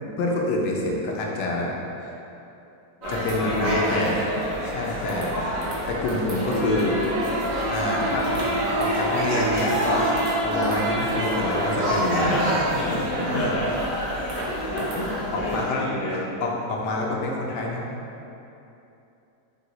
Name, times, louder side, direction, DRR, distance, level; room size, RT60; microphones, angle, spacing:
voice 1, 0.2-2.2 3.1-4.2 4.6-5.4 5.9-7.0 7.7-10.1 10.4-12.3 12.7-13.6 15.0-17.9, left 2 dB, 80° left, -2 dB, 1.2 m, -27 dB
voice 2, 3.0-4.4 11.1-11.2 11.5-11.6 12.1-12.5 13.2-13.7 14.0-16.2, equal, 55° left, -7 dB, 0.4 m, -29 dB
sound 1, 3.0-15.7, equal, 60° right, 1.1 m, -29 dB
sound 2, 6.5-12.0, right 1 dB, 75° right, 1.4 m, -27 dB
4.4 x 2.7 x 3.0 m, 2.9 s
omnidirectional pair, 1.8 m